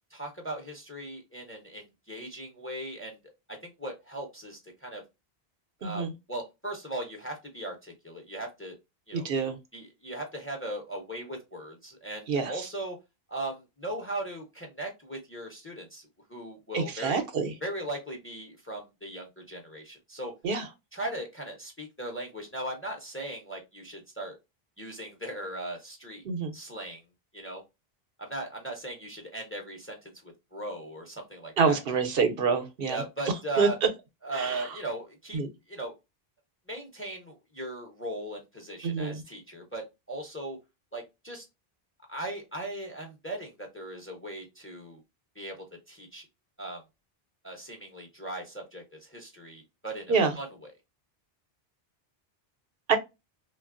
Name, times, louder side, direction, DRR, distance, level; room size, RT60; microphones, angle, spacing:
voice 1, 0.1-3.2 3.5-5.0 5.8-8.8 9.1-9.3 9.7-13.0 13.3-17.3 17.6-20.3 20.9-24.4 24.8-26.2 26.5-27.0 27.3-27.6 28.2-31.8 32.9-33.8 34.2-35.4 35.7-35.9 36.7-40.6 40.9-41.5 42.1-45.0 45.4-46.2 46.6-46.8 47.4-50.7, right 1 dB, 15° left, 0.7 m, -38 dB
voice 2, 5.8-6.1 9.1-9.6 12.3-12.5 16.7-17.5 20.4-20.6 26.2-26.5 31.6-33.0 33.6-33.7 34.3-34.7 35.3-35.5 38.8-39.2 50.1-50.3 52.9-53.0, right 5 dB, 70° right, 0.8 m, -26 dB
3.1 x 2.3 x 2.4 m
omnidirectional pair, 1.0 m